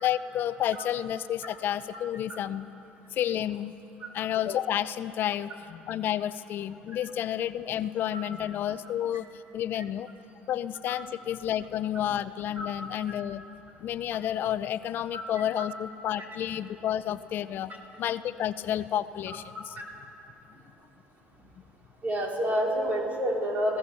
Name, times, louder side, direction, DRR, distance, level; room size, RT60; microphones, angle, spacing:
voice 1, 0.0-2.7 3.1-3.7 4.1-10.1 10.5-13.4 13.8-17.7 18.0-19.7, left 11 dB, 55° left, 14 dB, 0.6 m, -30 dB
voice 2, 22.0-23.8, equal, 40° right, 0 dB, 4.2 m, -29 dB
25.0 x 17.0 x 7.0 m, 2.9 s
supercardioid pair, 100°, 4 cm